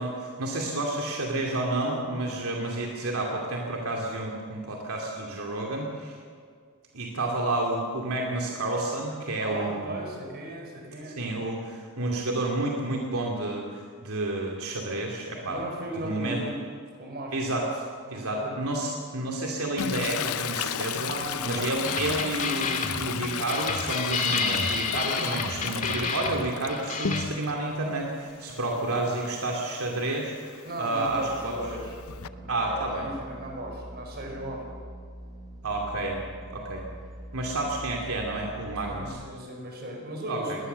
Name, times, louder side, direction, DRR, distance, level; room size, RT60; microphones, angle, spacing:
voice 1, 0.0-6.2 6.9-9.9 11.1-15.6 16.0-16.4 17.3-17.7 18.1-21.1 21.4-31.6 32.5-33.1 35.6-36.2 36.5-36.8 37.3-39.2 40.3-40.6, right 2 dB, 80° right, 0 dB, 2.5 m, -30 dB
voice 2, 9.4-11.2 15.4-16.6 17.0-17.6 18.0-18.6 21.1-22.0 28.5-28.8 30.6-31.9 32.3-34.7 38.9-40.7, right 1 dB, 45° right, 1 dB, 5.3 m, -37 dB
Toilet flush, 19.8-27.6 28.0-32.3, left 8 dB, 80° left, 0.6 m, -35 dB
sound 1, 21.8-27.2, left 4 dB, 35° left, 2.1 m, -30 dB
sound 2, 31.0-39.1, right 1 dB, ahead, 5.4 m, -44 dB
20.5 x 19.0 x 6.8 m, 2.1 s
head